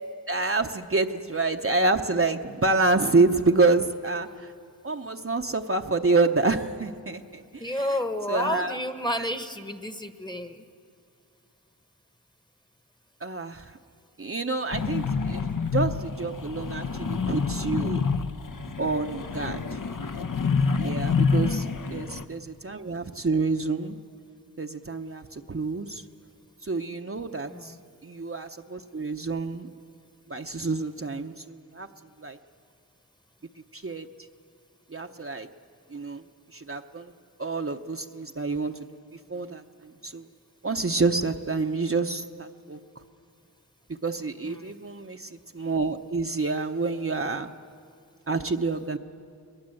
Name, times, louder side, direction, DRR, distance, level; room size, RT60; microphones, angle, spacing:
voice 1, 0.3-4.5 4.8-7.6 8.3-8.8 13.2-13.7 14.2-15.5 15.7-18.0 18.8-19.8 20.8-21.7 21.9-24.0 24.6-26.0 26.6-27.7 28.0-29.7 30.3-31.9 32.2-32.4 33.7-34.1 34.9-35.5 35.9-36.2 36.5-37.1 37.4-38.7 39.3-40.3 40.6-42.8 44.0-47.5 48.3-49.0, right 3 dB, 35° right, 4 dB, 0.8 m, -27 dB
voice 2, 7.6-10.6 21.4-21.6 27.5-27.8 44.4-44.7, left 1 dB, 10° left, 8 dB, 1.1 m, -31 dB
sound 1, 14.7-22.2, left 5 dB, 55° left, 0.9 m, -27 dB
21.0 x 21.0 x 7.7 m, 2.4 s
wide cardioid pair, 55°, 38 cm